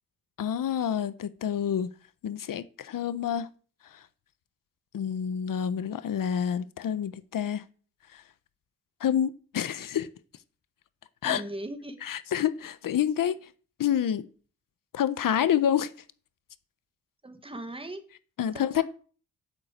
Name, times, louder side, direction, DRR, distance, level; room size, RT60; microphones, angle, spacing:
voice 1, 0.4-1.9 2.2-3.5 3.8-4.0 4.9-7.6 8.1-8.2 9.0-10.1 11.2-11.4 12.0-13.5 13.8-14.3 14.9-15.9 18.4-18.8, left 9 dB, 70° left, 0.8 m, -28 dB
voice 2, 11.2-12.0 17.2-18.0 18.5-18.8, right 1 dB, 15° right, 1.4 m, -38 dB
8.5 x 8.0 x 8.6 m
wide cardioid pair, 160°, 34 cm